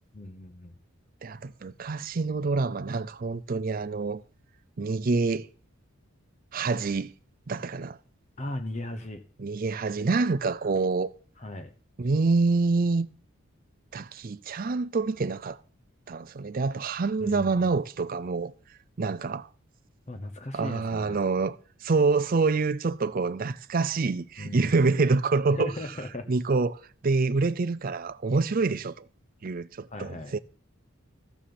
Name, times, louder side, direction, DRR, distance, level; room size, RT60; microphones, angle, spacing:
voice 1, 0.1-0.8 8.4-9.2 11.4-11.7 17.2-17.8 20.1-21.2 24.4-24.9 25.5-26.3 29.9-30.3, left 1 dB, 30° left, 0.9 m, -37 dB
voice 2, 1.2-4.2 4.8-5.5 6.5-7.1 7.5-8.0 9.4-11.1 12.0-13.1 13.9-15.6 16.1-18.5 19.0-19.5 20.5-25.7 26.3-29.1 29.4-30.4, right 3 dB, 40° right, 0.5 m, -26 dB
14.0 x 7.2 x 6.9 m
head